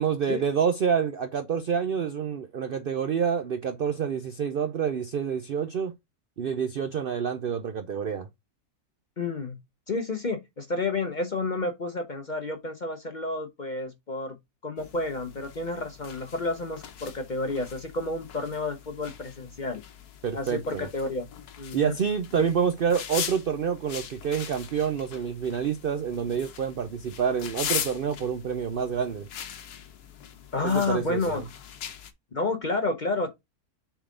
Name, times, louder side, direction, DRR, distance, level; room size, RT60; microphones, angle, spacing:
voice 1, 0.0-5.9 6.4-8.3 20.2-20.9 21.7-29.3 30.6-31.4, right 7 dB, 65° right, 0.5 m, -28 dB
voice 2, 9.2-9.6 9.9-14.4 14.6-19.8 20.3-21.3 21.6-21.9 22.4-22.5 30.5-31.4 32.3-33.3, left 3 dB, 45° left, 0.7 m, -30 dB
sound 1, 14.8-32.1, left 8 dB, 80° left, 1.4 m, -40 dB
7.0 x 3.7 x 3.7 m
omnidirectional pair, 1.6 m